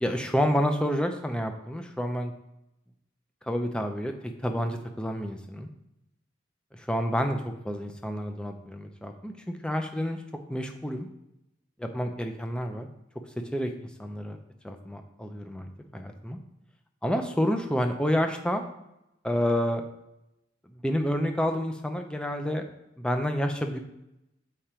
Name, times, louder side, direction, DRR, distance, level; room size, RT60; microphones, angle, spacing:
voice 1, 0.0-2.3 3.4-5.7 6.7-10.2 10.5-11.1 11.8-12.9 13.5-14.4 14.6-16.4 17.0-18.6 19.2-19.8 20.8-22.6 23.0-23.8, equal, 5° left, 5 dB, 0.6 m, -29 dB
7.1 x 4.9 x 4.4 m, 0.88 s
head